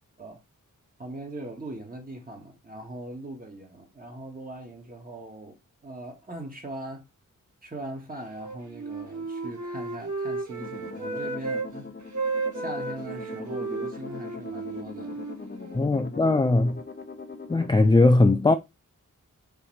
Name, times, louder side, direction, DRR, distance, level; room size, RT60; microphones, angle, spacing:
voice 1, 1.0-5.6 5.8-7.1 7.6-11.9 12.5-15.2, right 1 dB, 25° right, 1.9 m, -40 dB
Wind instrument woodwind instrument, 8.3-11.7 12.0-15.9, right 3 dB, 60° right, 1.9 m, -34 dB
sound 1, 10.6-17.7, left 4 dB, 30° left, 0.8 m, -41 dB
voice 2, 15.7-16.8 17.5-18.5, left 2 dB, 15° left, 0.4 m, -19 dB
5.6 x 3.3 x 5.5 m
wide cardioid pair, 140°, 32 cm